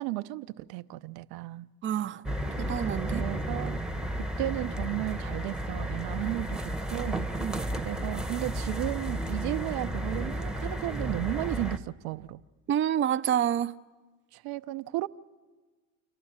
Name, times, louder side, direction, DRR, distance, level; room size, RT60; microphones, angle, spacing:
voice 1, 0.0-1.7 3.1-3.8 4.2-7.3 7.8-12.4 14.3-15.1, right 18 dB, 65° right, 0.6 m, -34 dB
voice 2, 1.8-2.2 2.6-3.2 7.4-7.6 12.7-13.7, right 10 dB, 30° right, 0.6 m, -27 dB
sound 1, 2.2-11.8, right 1 dB, ahead, 1.1 m, -33 dB
28.5 x 11.5 x 8.7 m
hypercardioid pair, 75°, 40 cm